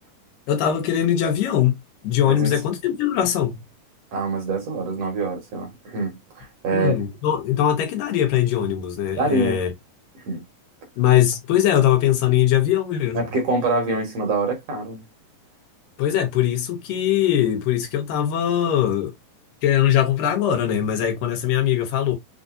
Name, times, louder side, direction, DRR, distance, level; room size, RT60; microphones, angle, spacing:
voice 1, 0.5-1.8 2.0-3.6 6.7-9.7 11.0-13.3 16.0-19.1 19.6-22.1, left 10 dB, 90° left, 2.7 m, -21 dB
voice 2, 2.3-2.6 4.1-6.9 9.2-9.6 10.2-10.4 13.1-15.0, right 2 dB, 60° right, 2.0 m, -25 dB
5.7 x 2.6 x 2.5 m
omnidirectional pair, 3.9 m